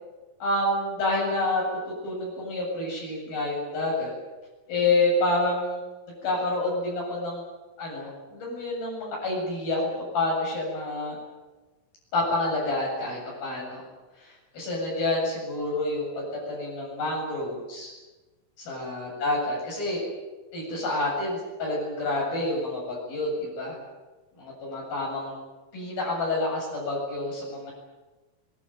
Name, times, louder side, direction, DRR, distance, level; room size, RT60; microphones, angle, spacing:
voice 1, 0.4-1.6 2.0-4.1 4.7-5.8 6.2-7.4 7.8-11.2 12.1-13.8 14.2-17.9 18.6-20.0 20.5-23.8 24.4-25.4 25.7-27.7, left 2 dB, 90° left, -3 dB, 9.9 m, -28 dB
25.0 x 21.0 x 9.3 m, 1.2 s
omnidirectional pair, 4.1 m